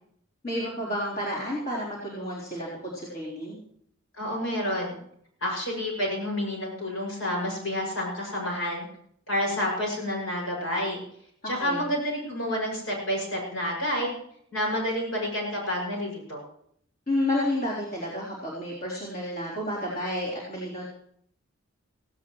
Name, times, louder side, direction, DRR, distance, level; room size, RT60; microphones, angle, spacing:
voice 1, 0.4-3.6 11.4-11.8 17.1-20.9, left 1 dB, 45° left, -6 dB, 3.9 m, -31 dB
voice 2, 4.2-5.0 5.4-8.9 9.3-11.0 11.4-14.1 14.5-16.4, equal, 75° left, -1 dB, 6.6 m, -29 dB
17.0 x 16.5 x 3.2 m, 0.67 s
head